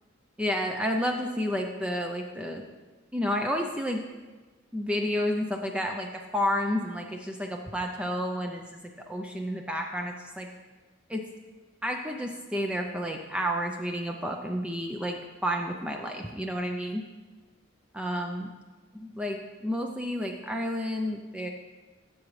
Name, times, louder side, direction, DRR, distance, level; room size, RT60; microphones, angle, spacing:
voice 1, 0.4-2.6 3.1-4.0 4.7-8.8 9.1-10.5 11.1-11.3 11.8-17.0 17.9-18.5 18.9-21.5, equal, 5° right, 2 dB, 0.4 m, -31 dB
15.5 x 7.2 x 3.2 m, 1.3 s
head